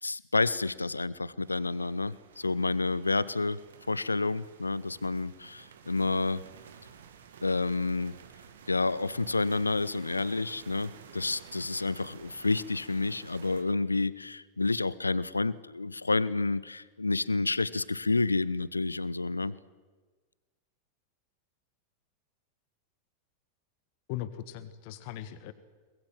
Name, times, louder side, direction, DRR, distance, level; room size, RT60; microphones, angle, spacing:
voice 1, 0.0-3.6 3.9-6.4 7.4-8.2 8.7-19.6, left 3 dB, 80° left, 20 dB, 0.6 m, -29 dB
sound 1, 1.4-13.6, right 7 dB, 65° right, 2.2 m, -52 dB
voice 2, 24.1-25.5, left 12 dB, 50° left, 13 dB, 1.5 m, -39 dB
23.5 x 21.0 x 7.8 m, 1.4 s
figure-of-eight pair, 90°, 0 cm